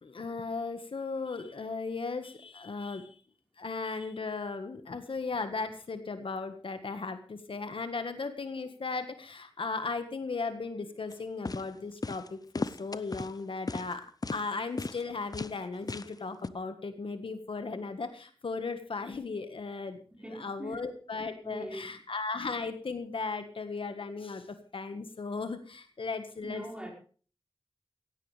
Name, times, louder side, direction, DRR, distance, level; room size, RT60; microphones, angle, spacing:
voice 1, 0.0-3.2 3.6-20.0 20.3-24.5 24.7-26.6, left 4 dB, 70° left, 8 dB, 1.6 m, -36 dB
sound 1, 11.1-11.2 11.5-11.7 12.0-12.3 12.6-13.3 13.7-13.9 14.2-14.4 14.8-15.0 15.3-15.5 15.9-16.1 16.4-16.5, left 3 dB, 40° left, 0.7 m, -35 dB
voice 2, 20.1-20.9 21.4-21.9 26.4-26.9, right 1 dB, 10° right, 1 dB, 5.1 m, -42 dB
17.0 x 16.0 x 3.4 m, 0.39 s
wide cardioid pair, 100°, 9 cm